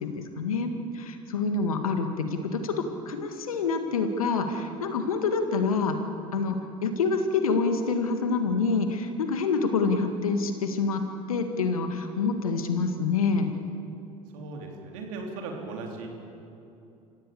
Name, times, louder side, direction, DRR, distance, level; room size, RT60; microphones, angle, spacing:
voice 1, 0.0-2.7 3.1-6.0 6.3-11.0 11.3-13.5, left 4 dB, 85° left, 7 dB, 1.9 m, -27 dB
voice 2, 14.3-16.1, right 3 dB, 70° right, 2 dB, 3.8 m, -37 dB
27.5 x 15.5 x 7.1 m, 2.8 s
hypercardioid pair, 65°, 18 cm